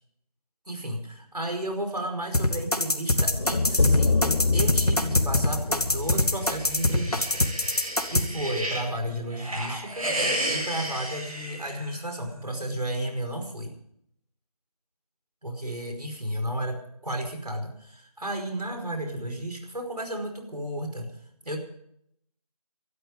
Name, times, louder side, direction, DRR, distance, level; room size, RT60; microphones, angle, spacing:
voice 1, 0.7-4.2 4.5-7.4 8.0-10.1 10.5-13.7 15.4-21.1 21.4-21.6, right 1 dB, 85° right, 4 dB, 5.1 m, -33 dB
sound 1, 2.3-8.2, left 1 dB, 75° left, 2.2 m, -23 dB
sound 2, 3.3-7.5, left 3 dB, 45° left, 1.4 m, -26 dB
sound 3, 6.2-8.9 9.3-12.2, right 1 dB, 60° right, 7.6 m, -32 dB
20.0 x 12.5 x 5.3 m, 0.72 s
figure-of-eight pair, 165°, 20 cm